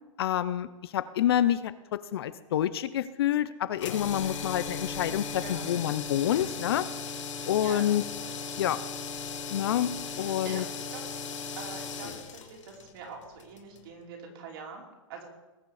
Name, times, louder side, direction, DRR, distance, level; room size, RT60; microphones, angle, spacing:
voice 1, 0.2-6.9 7.5-8.0 8.6-8.8 9.5-10.6, left 11 dB, 50° left, 15 dB, 0.6 m, -28 dB
sound 1, 3.8-13.9, left 5 dB, 65° left, 2.1 m, -37 dB
voice 2, 7.4-7.9 8.2-8.6 10.1-11.0 11.6-15.3, right 4 dB, 45° right, 0 dB, 3.2 m, -44 dB
20.0 x 6.7 x 4.9 m, 1.1 s
hypercardioid pair, 155°, 17 cm